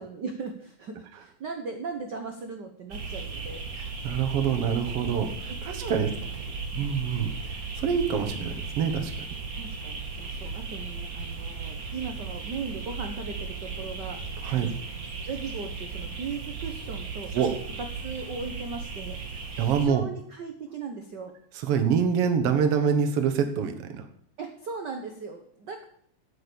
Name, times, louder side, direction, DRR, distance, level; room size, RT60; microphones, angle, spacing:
voice 1, 0.0-3.6 5.4-5.5 5.8-6.9 9.6-14.2 14.5-14.8 15.3-17.3 17.8-19.2 19.6-21.3 24.4-25.8, right 4 dB, 75° right, 5 dB, 0.9 m, -38 dB
sound 1, 2.9-19.9, right 4 dB, 40° right, 2.3 m, -36 dB
voice 2, 3.8-6.1 6.8-9.1 14.4-14.7 17.3-17.5 19.6-20.0 21.6-24.1, right 7 dB, 60° right, 6 dB, 2.0 m, -26 dB
9.4 x 8.6 x 6.8 m, 0.65 s
omnidirectional pair, 3.5 m